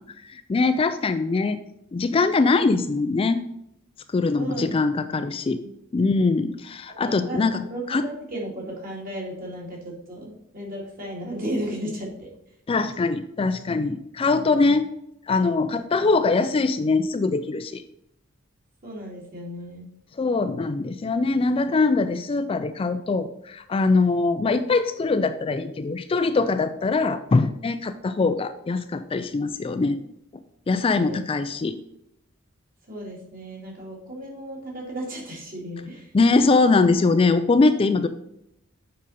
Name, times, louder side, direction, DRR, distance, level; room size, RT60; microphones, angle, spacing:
voice 1, 0.2-1.6 1.9-3.4 4.1-5.6 5.9-8.0 12.7-14.9 15.3-17.8 20.2-30.0 30.7-31.8 36.1-38.1, left 3 dB, 25° left, 10 dB, 0.3 m, -22 dB
voice 2, 4.3-4.7 5.1-5.3 5.6-5.7 7.0-7.4 7.7-12.3 18.8-19.9 30.9-31.2 32.9-36.1, right 1 dB, 45° right, -2 dB, 2.3 m, -34 dB
7.4 x 5.2 x 4.1 m, 0.80 s
head